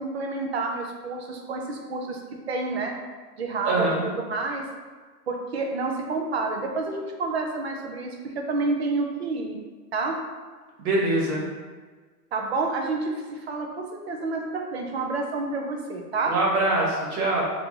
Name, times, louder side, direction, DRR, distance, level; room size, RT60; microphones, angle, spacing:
voice 1, 0.0-2.2 2.5-2.9 3.4-4.6 5.3-9.6 9.9-10.2 12.3-16.3, right 3 dB, 45° right, 2 dB, 0.5 m, -29 dB
voice 2, 3.6-4.1 10.8-11.4 16.3-17.4, right 2 dB, 65° right, -4 dB, 1.4 m, -23 dB
4.2 x 2.7 x 2.6 m, 1.4 s
hypercardioid pair, 170°, 48 cm